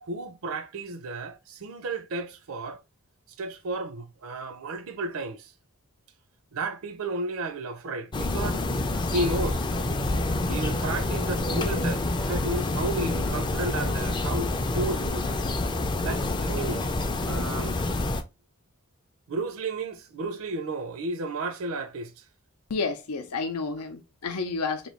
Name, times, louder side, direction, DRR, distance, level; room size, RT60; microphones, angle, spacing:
voice 1, 0.0-2.8 3.4-5.5 6.5-8.6 9.1-9.7 10.5-15.4 16.0-17.0 17.3-17.8 19.3-22.2, right 2 dB, 65° right, 0.5 m, -33 dB
sound 1, 8.1-18.2, left 2 dB, 20° left, 0.4 m, -27 dB
voice 2, 22.7-24.9, left 4 dB, 85° left, 0.6 m, -30 dB
3.0 x 2.6 x 4.3 m
head